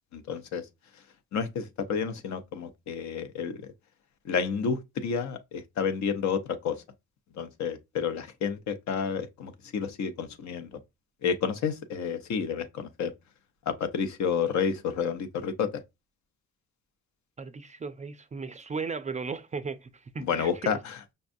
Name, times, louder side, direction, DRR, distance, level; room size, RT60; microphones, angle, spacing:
voice 1, 0.1-0.6 1.3-3.6 4.2-6.7 7.4-10.8 11.2-13.1 13.7-15.7 20.2-21.0, left 6 dB, 65° left, 0.7 m, -30 dB
voice 2, 17.4-20.8, right 4 dB, 25° right, 0.3 m, -36 dB
5.3 x 2.2 x 2.6 m
cardioid pair, 90°, 30 cm